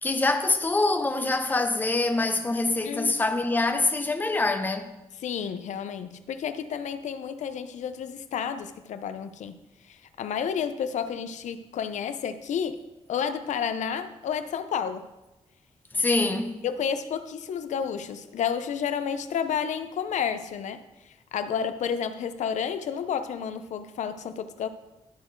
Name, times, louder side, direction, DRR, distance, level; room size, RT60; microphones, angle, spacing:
voice 1, 0.0-4.9 15.9-16.6, left 2 dB, 15° left, 0.6 m, -25 dB
voice 2, 5.2-9.6 9.9-12.8 13.1-15.1 16.6-20.8 21.3-24.7, left 7 dB, 90° left, 0.5 m, -31 dB
12.0 x 4.4 x 4.5 m
wide cardioid pair, 160°, 12 cm